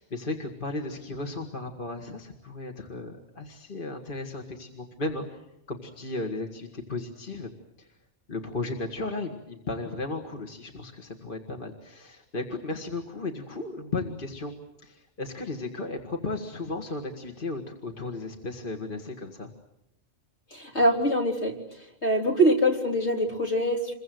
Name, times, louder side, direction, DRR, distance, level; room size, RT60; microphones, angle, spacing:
voice 1, 0.0-7.5 7.8-7.9 8.3-14.5 14.8-19.5, left 3 dB, 45° left, 3 dB, 2.0 m, -35 dB
voice 2, 20.5-21.6 22.0-23.9, equal, 65° left, 0 dB, 4.2 m, -24 dB
27.5 x 23.0 x 7.8 m, 0.83 s
omnidirectional pair, 1.2 m